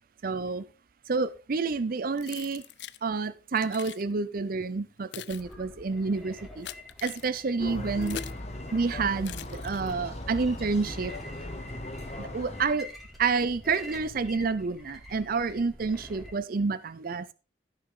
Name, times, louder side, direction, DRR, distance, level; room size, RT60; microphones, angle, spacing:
voice 1, 0.2-0.6 1.1-2.6 3.0-6.7 7.0-8.2 8.7-11.1 12.2-12.9 13.2-17.3, right 4 dB, 55° right, 0.5 m, -29 dB
Keys jangling, 2.2-3.0 3.6-4.0 4.8-8.5 9.2-10.1, left 11 dB, 70° left, 0.5 m, -44 dB
sound 1, 5.3-16.3, left 1 dB, ahead, 2.3 m, -47 dB
sound 2, 7.6-12.7, left 1 dB, 40° left, 1.4 m, -38 dB
14.5 x 6.5 x 3.6 m
head